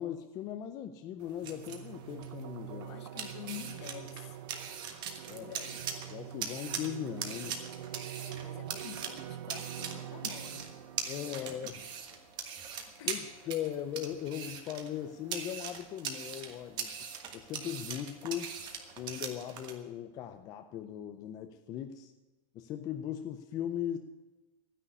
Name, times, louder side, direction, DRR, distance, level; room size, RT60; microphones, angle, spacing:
voice 1, 0.0-2.9 5.3-5.6 6.0-7.6 11.0-11.8 13.1-16.9 17.3-18.5 19.0-22.1 22.5-24.0, left 10 dB, 20° left, 7 dB, 0.5 m, -39 dB
sound 1, 1.2-19.8, right 7 dB, 25° right, 1.4 m, -42 dB
sound 2, 1.4-12.4, right 11 dB, 45° right, 0.7 m, -45 dB
voice 2, 2.7-4.3 5.4-5.8 8.1-10.7 11.3-11.5 13.0-13.2, left 11 dB, 50° left, 11 dB, 1.2 m, -47 dB
12.5 x 9.9 x 9.8 m, 1.1 s
supercardioid pair, 175°, 18 cm